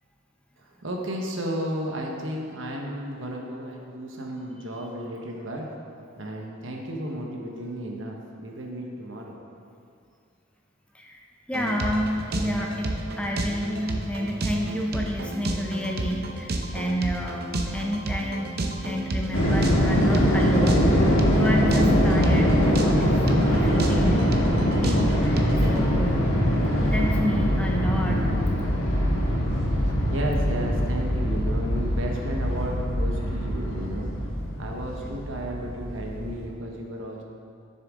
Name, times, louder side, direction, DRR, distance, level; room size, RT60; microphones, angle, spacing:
voice 1, 0.6-5.6 6.2-9.3 30.1-34.1 34.6-37.2, right 1 dB, 70° right, 0 dB, 1.2 m, -33 dB
voice 2, 11.5-18.6 18.8-23.2 23.4-24.1 24.8-26.3 26.8-28.3, equal, 5° left, 0 dB, 0.6 m, -29 dB
sound 1, 11.5-25.9, right 1 dB, 50° right, 0.7 m, -31 dB
sound 2, 19.3-36.4, equal, 90° left, 1.6 m, -23 dB
10.5 x 6.8 x 3.7 m, 2.4 s
head